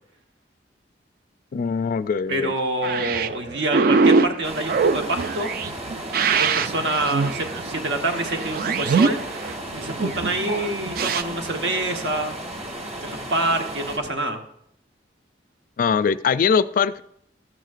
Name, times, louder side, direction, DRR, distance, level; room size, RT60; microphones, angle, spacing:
voice 1, 1.5-2.5 15.8-17.0, left 6 dB, 50° left, 15 dB, 0.3 m, -22 dB
voice 2, 2.3-5.5 6.3-9.2 9.7-12.3 13.0-14.4, right 2 dB, 80° right, 3 dB, 1.2 m, -26 dB
sound 1, 2.8-11.2, right 4 dB, 55° right, 0.4 m, -23 dB
sound 2, 4.4-14.0, right 1 dB, 40° right, 2.4 m, -34 dB
14.0 x 9.1 x 2.5 m, 0.72 s
head